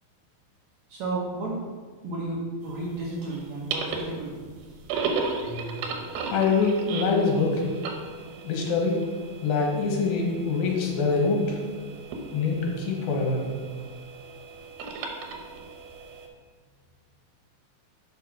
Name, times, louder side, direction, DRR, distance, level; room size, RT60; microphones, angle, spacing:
voice 1, 0.9-1.6 2.0-4.4, right 2 dB, 60° right, -4 dB, 2.0 m, -32 dB
sound 1, 2.7-16.3, right 4 dB, 85° right, 2.9 m, -36 dB
voice 2, 6.3-7.7 8.4-9.0 9.4-11.6 12.3-13.4, left 4 dB, 75° left, 0 dB, 2.9 m, -24 dB
6.7 x 5.6 x 6.0 m, 1.5 s
omnidirectional pair, 4.3 m